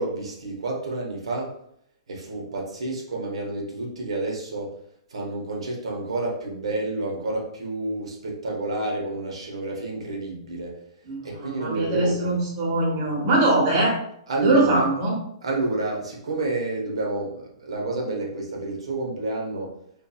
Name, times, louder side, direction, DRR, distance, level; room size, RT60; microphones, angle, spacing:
voice 1, 0.0-1.5 2.1-4.8 5.1-10.8 11.2-12.3 14.3-14.8 15.4-19.7, right 2 dB, 85° right, -1 dB, 0.9 m, -29 dB
voice 2, 11.1-14.0 14.4-15.1, right 2 dB, 40° right, -3 dB, 1.0 m, -22 dB
2.7 x 2.5 x 2.3 m, 0.69 s
hypercardioid pair, 140°, 3 cm